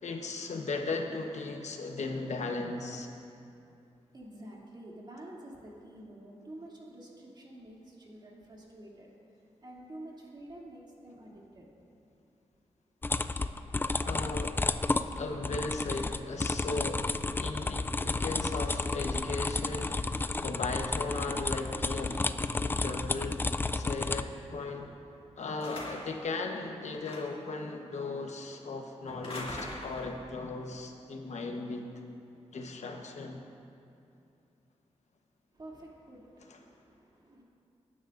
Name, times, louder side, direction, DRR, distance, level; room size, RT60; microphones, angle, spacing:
voice 1, 0.0-3.1 14.0-14.6 15.1-17.1 17.3-19.9 20.4-22.2 22.6-23.4 23.7-24.9 25.4-31.9 32.5-33.4 36.5-36.6, left 3 dB, 80° left, 3 dB, 1.1 m, -37 dB
voice 2, 4.1-9.1 9.6-11.7 35.5-37.4, right 1 dB, 40° right, -4 dB, 2.7 m, -49 dB
sound 1, 13.0-24.2, left 3 dB, 20° left, 0.3 m, -32 dB
sound 2, 25.6-26.2 27.0-27.5 29.1-30.2, left 1 dB, 50° left, 2.3 m, -41 dB
22.0 x 9.9 x 2.6 m, 2.6 s
wide cardioid pair, 90°, 12 cm